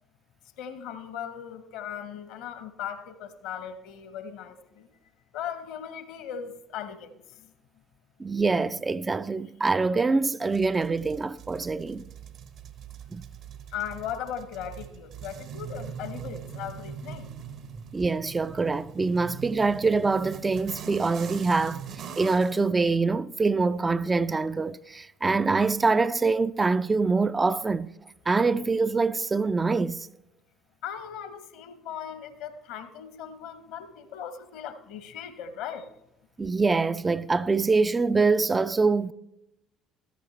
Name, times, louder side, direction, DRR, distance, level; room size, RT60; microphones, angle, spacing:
voice 1, 0.6-4.9 5.3-7.5 13.7-17.3 30.8-35.9, left 8 dB, 65° left, 1.0 m, -38 dB
voice 2, 8.2-12.0 13.1-13.2 17.9-27.9 28.3-30.1 36.4-39.1, right 4 dB, 20° right, 0.4 m, -25 dB
sound 1, 10.5-22.6, right 7 dB, 55° right, 0.9 m, -42 dB
14.5 x 14.0 x 3.2 m
figure-of-eight pair, 55°, 0 cm